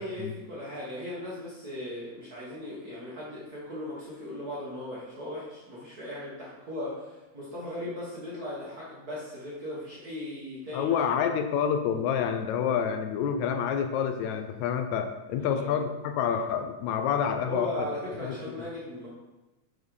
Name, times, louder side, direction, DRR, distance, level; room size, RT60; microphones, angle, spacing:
voice 1, 0.0-11.0 15.4-15.8 17.5-19.1, left 1 dB, 45° right, -7 dB, 1.3 m, -38 dB
voice 2, 10.7-17.7 18.2-18.4, left 7 dB, 80° left, 5 dB, 1.9 m, -28 dB
7.2 x 4.3 x 4.7 m, 1.0 s
omnidirectional pair, 3.3 m